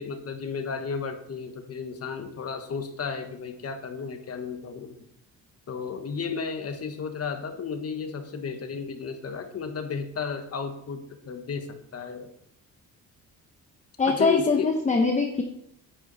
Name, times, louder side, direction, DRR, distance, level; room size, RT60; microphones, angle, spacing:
voice 1, 0.0-5.0 5.7-12.3 14.0-14.7, left 5 dB, 45° left, 6 dB, 1.4 m, -33 dB
voice 2, 14.0-15.4, left 4 dB, 20° left, 3 dB, 1.0 m, -23 dB
9.3 x 8.6 x 4.2 m, 0.74 s
cardioid pair, 120°, 34 cm